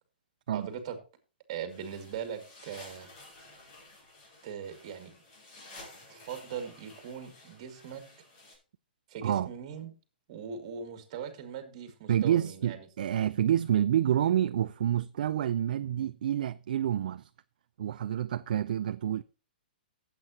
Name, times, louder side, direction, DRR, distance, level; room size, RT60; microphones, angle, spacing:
voice 1, 0.5-1.0 1.5-3.1 4.4-5.1 6.1-8.0 9.1-9.9 10.3-12.8, right 7 dB, 35° right, 2.2 m, -40 dB
sound 1, 1.7-8.6, left 2 dB, 30° left, 4.9 m, -53 dB
voice 2, 12.1-17.3 17.8-19.2, right 10 dB, 55° right, 0.4 m, -28 dB
14.5 x 8.3 x 2.8 m
hypercardioid pair, 170°, 5 cm